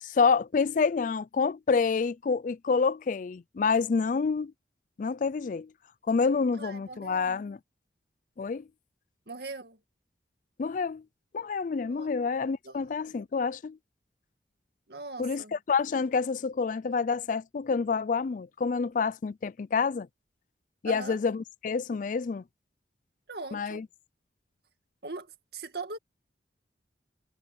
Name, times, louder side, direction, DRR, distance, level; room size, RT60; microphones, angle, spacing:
voice 1, 0.0-4.5 5.0-5.7 6.1-7.6 8.4-8.6 10.6-11.0 11.3-13.8 15.2-20.1 20.8-22.4 23.5-23.9, left 5 dB, 45° left, 0.4 m, -28 dB
voice 2, 6.5-7.4 9.3-9.8 11.9-12.2 12.6-12.8 14.9-15.6 20.8-21.2 23.3-23.8 25.0-26.0, right 3 dB, 60° right, 2.3 m, -41 dB
head